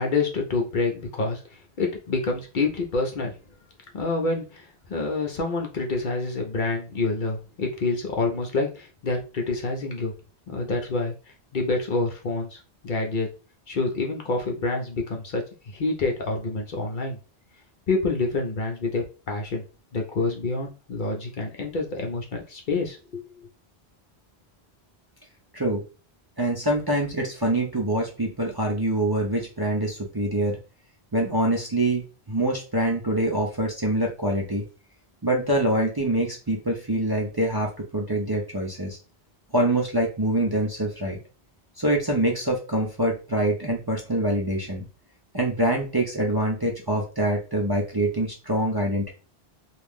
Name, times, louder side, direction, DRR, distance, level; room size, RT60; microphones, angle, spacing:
voice 1, 0.0-1.4 1.8-3.3 3.9-10.1 10.5-11.1 11.5-13.3 13.7-17.2 17.9-19.6 19.9-23.2, left 3 dB, 55° left, 1 dB, 0.8 m, -27 dB
voice 2, 26.4-30.6 31.1-34.6 35.2-39.0 39.5-41.2 41.8-44.9 45.3-49.1, right 1 dB, 25° right, -2 dB, 0.6 m, -25 dB
2.9 x 2.5 x 3.5 m, 0.33 s
omnidirectional pair, 1.1 m